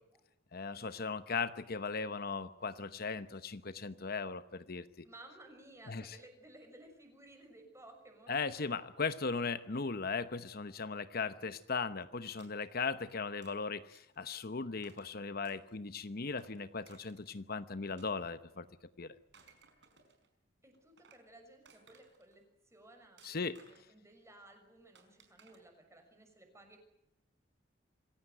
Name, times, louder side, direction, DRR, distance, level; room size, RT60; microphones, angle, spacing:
voice 1, 0.5-5.1 5.9-6.2 8.3-18.7 19.0-19.1 23.2-23.6, left 4 dB, 55° left, 12 dB, 0.9 m, -38 dB
voice 2, 5.0-8.4 20.6-26.8, right 1 dB, 15° right, 5 dB, 6.1 m, -57 dB
sound 1, 12.4-12.9 13.4-13.6 13.9-14.2 14.8-15.1 15.5-15.9 16.4-17.4 18.0-18.7 19.2-20.3 20.7-21.3 21.7-22.4 23.2-24.0 25.0-25.6, right 5 dB, 65° right, 5.2 m, -63 dB
26.5 x 16.0 x 9.2 m, 0.92 s
head